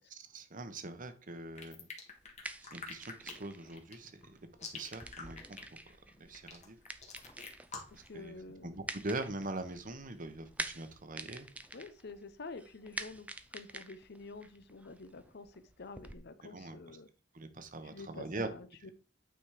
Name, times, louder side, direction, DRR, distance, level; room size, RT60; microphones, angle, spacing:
voice 1, 0.3-1.9 2.6-4.4 4.7-5.4 6.2-6.8 7.9-8.3 8.6-11.5 16.4-16.8 17.3-18.5, right 2 dB, 45° right, 9 dB, 1.0 m, -42 dB
sound 1, 1.5-8.1, left 4 dB, 40° left, 1.7 m, -46 dB
sound 2, 2.1-16.1, right 2 dB, 10° right, 0.5 m, -48 dB
voice 2, 7.9-8.7 11.7-17.1 17.8-18.9, left 3 dB, 60° left, 12 dB, 0.8 m, -49 dB
9.0 x 4.1 x 4.9 m, 0.38 s
head